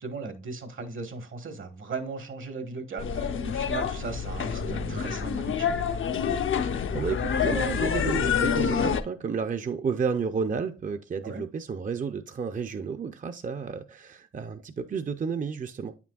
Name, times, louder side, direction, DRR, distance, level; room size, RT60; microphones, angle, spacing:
voice 1, 0.0-5.7 11.2-11.4, right 3 dB, 70° right, 1.3 m, -37 dB
sound 1, 3.0-9.0, left 7 dB, 70° left, 0.6 m, -27 dB
sound 2, 4.6-10.9, right 2 dB, 85° right, 1.0 m, -47 dB
voice 2, 6.6-16.0, right 5 dB, 40° right, 0.5 m, -31 dB
8.9 x 5.9 x 2.3 m
cardioid pair, 85°, 21 cm